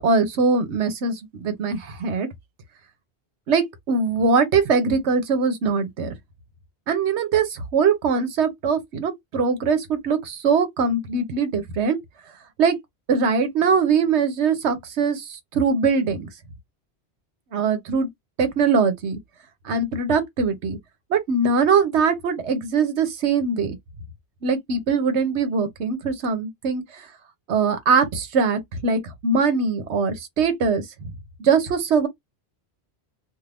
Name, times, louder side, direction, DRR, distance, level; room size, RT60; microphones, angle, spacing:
voice 1, 0.0-2.3 3.5-6.1 6.9-12.0 12.6-12.8 13.1-15.2 15.5-16.3 17.5-18.1 18.4-19.2 19.7-20.8 21.1-23.8 24.4-26.8 27.5-30.8 31.4-32.1, right 5 dB, 85° right, 1.1 m, -22 dB
2.6 x 2.4 x 3.4 m
omnidirectional pair, 1.1 m